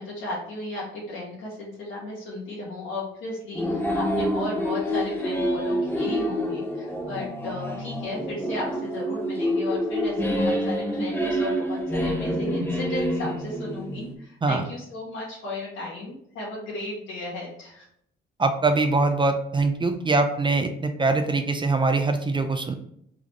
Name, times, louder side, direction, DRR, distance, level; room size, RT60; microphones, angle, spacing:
voice 1, 0.0-17.9, left 2 dB, 80° left, -6 dB, 1.4 m, -35 dB
sound 1, 3.5-14.1, equal, 10° left, 0.9 m, -27 dB
voice 2, 18.4-22.7, right 3 dB, 25° right, 6 dB, 0.5 m, -23 dB
3.8 x 3.5 x 3.1 m, 0.70 s
cardioid pair, 90°, 20 cm